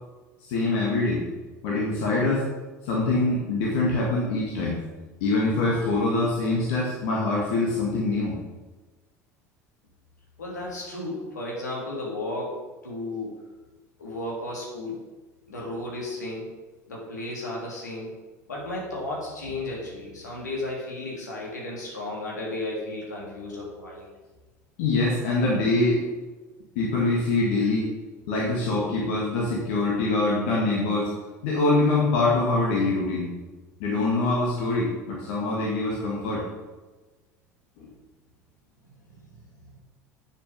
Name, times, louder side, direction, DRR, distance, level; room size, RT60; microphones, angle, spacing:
voice 1, 0.4-1.2 1.6-2.5 2.8-4.8 5.2-8.4 24.8-26.0 26.8-27.9 28.3-31.1 31.4-33.3 33.8-36.4 37.8-37.9, left 2 dB, 60° left, -4 dB, 2.2 m, -24 dB
voice 2, 10.4-13.4 14.0-15.0 15.5-16.5 16.9-18.1 18.5-24.1 38.9-39.8, left 2 dB, 80° left, -3 dB, 2.9 m, -34 dB
8.9 x 7.1 x 5.3 m, 1.2 s
figure-of-eight pair, 70°, 9 cm